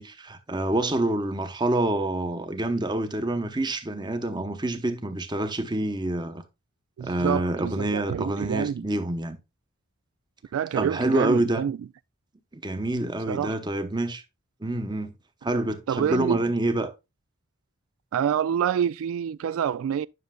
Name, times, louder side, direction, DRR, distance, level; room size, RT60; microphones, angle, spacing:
voice 1, 0.0-6.4 7.0-9.4 10.8-11.6 12.5-14.2 14.6-15.1 15.4-16.9, right 1 dB, 20° right, 0.9 m, -27 dB
voice 2, 7.0-8.9 10.5-11.8 13.3-13.6 15.9-16.4 18.1-20.1, right 8 dB, 80° right, 0.3 m, -27 dB
9.5 x 6.4 x 2.3 m
head